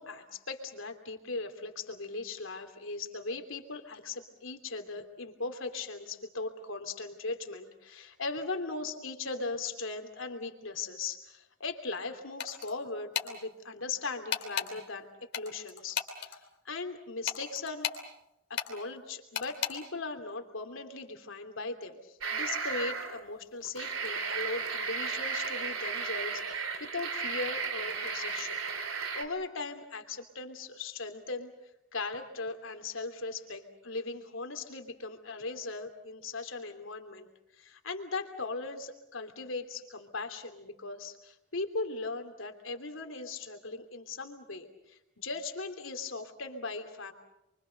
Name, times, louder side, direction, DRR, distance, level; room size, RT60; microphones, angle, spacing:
voice 1, 0.0-15.1 15.3-17.9 18.5-28.6 29.1-31.5 31.9-37.3 37.6-47.1, left 3 dB, 75° left, 5 dB, 3.0 m, -39 dB
sound 1, 12.4-12.7 13.1-13.3 14.3-14.7 15.3-16.4 17.3-18.0 18.6-18.7 19.3-19.7, left 8 dB, 55° left, 3.0 m, -33 dB
sound 2, 22.2-23.2 23.6-29.2, right 5 dB, 90° right, 3.0 m, -34 dB
29.5 x 24.0 x 6.7 m, 0.87 s
head